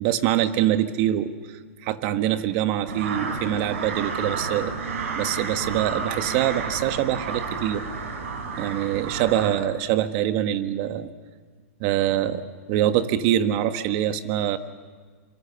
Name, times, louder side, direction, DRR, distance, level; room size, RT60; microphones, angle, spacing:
voice 1, 0.0-4.7 5.2-7.9 8.6-11.1 11.8-14.6, right 11 dB, 45° right, 9 dB, 1.5 m, -24 dB
sound 1, 2.9-9.6, right 4 dB, 80° right, 4.5 m, -31 dB
26.5 x 25.5 x 7.0 m, 1.5 s
hypercardioid pair, 140°, 7 cm